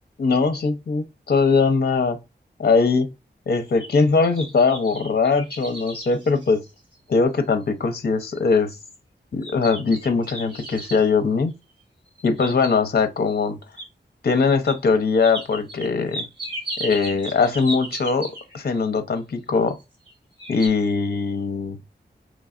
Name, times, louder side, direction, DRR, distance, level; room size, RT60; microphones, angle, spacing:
voice 1, 0.2-2.2 2.6-3.1 3.5-6.6 7.1-8.8 9.3-11.5 12.2-13.6 14.2-16.2 16.8-19.8 20.5-21.8, left 4 dB, 60° left, 0.6 m, -21 dB
sound 1, 3.5-7.1 7.6-7.7 8.2-8.6 9.4-11.1 12.1-13.1 13.8-13.9 14.6-14.8 15.2-18.7 19.7-20.1 20.4-20.7, right 1 dB, 25° right, 2.9 m, -36 dB
5.2 x 3.1 x 2.4 m
wide cardioid pair, 80°, 19 cm